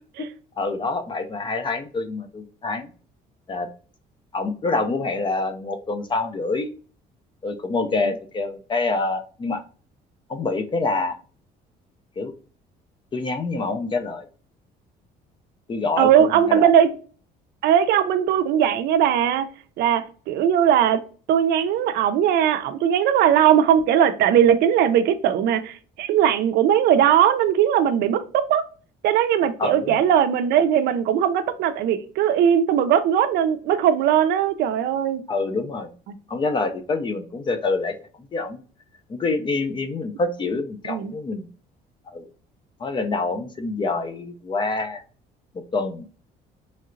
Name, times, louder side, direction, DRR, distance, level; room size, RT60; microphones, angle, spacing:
voice 1, 0.6-2.9 3.5-3.7 4.3-6.7 7.4-9.6 10.3-11.2 12.2-12.3 13.1-14.3 15.7-16.1 16.5-16.7 29.6-30.0 35.3-35.9 36.3-38.0 38.3-38.6 39.1-41.5 42.1-42.3 42.8-45.0 45.5-46.0, left 3 dB, 30° left, 0.4 m, -26 dB
voice 2, 16.0-16.9 17.6-19.5 19.8-21.0 21.3-28.6 29.0-35.2 40.8-41.1, right 9 dB, 75° right, 0.4 m, -19 dB
3.1 x 2.8 x 2.5 m
cardioid pair, 110°, 17 cm